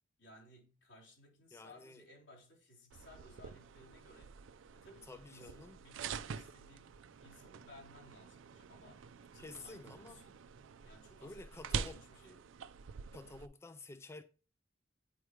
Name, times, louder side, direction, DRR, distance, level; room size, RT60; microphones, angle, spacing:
voice 1, 0.2-10.4 10.8-12.4, left 1 dB, 75° left, 3.4 m, -60 dB
voice 2, 1.5-2.0 5.0-5.8 9.4-10.2 11.2-12.0 13.1-14.2, left 3 dB, 15° left, 0.3 m, -51 dB
sound 1, 2.9-13.5, right 6 dB, 85° right, 0.4 m, -46 dB
8.8 x 4.8 x 3.1 m
head